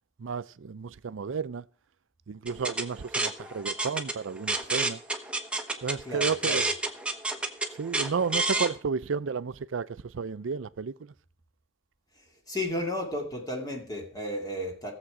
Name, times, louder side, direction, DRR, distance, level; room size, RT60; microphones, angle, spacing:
voice 1, 0.2-1.6 2.3-5.0 5.8-6.7 7.8-9.9 10.1-10.9, right 5 dB, 75° right, 0.5 m, -32 dB
sound 1, 2.5-8.7, right 2 dB, 5° right, 1.1 m, -30 dB
voice 2, 6.0-6.7 12.2-14.9, left 1 dB, 20° left, 2.3 m, -34 dB
18.0 x 7.4 x 4.9 m
head